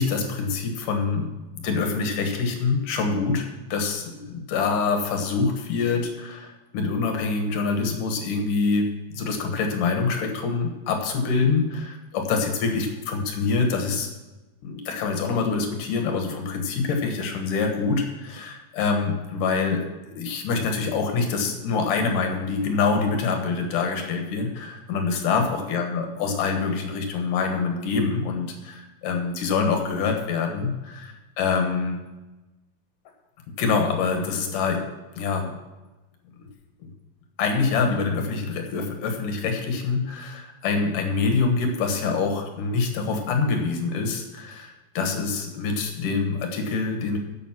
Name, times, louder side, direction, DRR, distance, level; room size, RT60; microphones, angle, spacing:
voice 1, 0.0-14.1 14.6-32.0 33.6-34.8 35.1-35.5 36.4-36.5 36.8-36.9 37.4-47.2, left 4 dB, 65° left, 4 dB, 2.3 m, -25 dB
10.5 x 7.7 x 5.8 m, 1.1 s
omnidirectional pair, 5.1 m